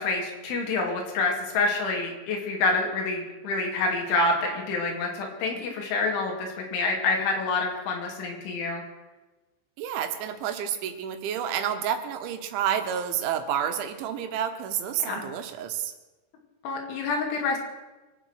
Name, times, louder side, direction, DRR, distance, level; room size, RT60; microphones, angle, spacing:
voice 1, 0.0-8.8 15.1-15.3 16.6-17.6, left 3 dB, 90° left, 1 dB, 5.0 m, -27 dB
voice 2, 9.8-15.9, right 9 dB, 90° right, 7 dB, 3.7 m, -29 dB
24.0 x 8.6 x 6.5 m, 1.1 s
omnidirectional pair, 5.3 m